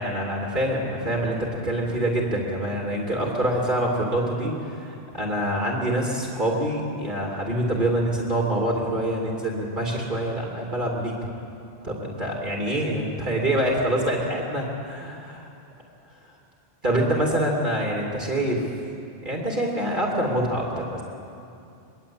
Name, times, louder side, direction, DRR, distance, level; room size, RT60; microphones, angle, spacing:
voice 1, 0.0-11.2 11.8-15.5 16.8-18.7 19.2-21.0, right 1 dB, 50° right, -2 dB, 2.9 m, -25 dB
22.5 x 22.5 x 8.8 m, 2.7 s
omnidirectional pair, 1.1 m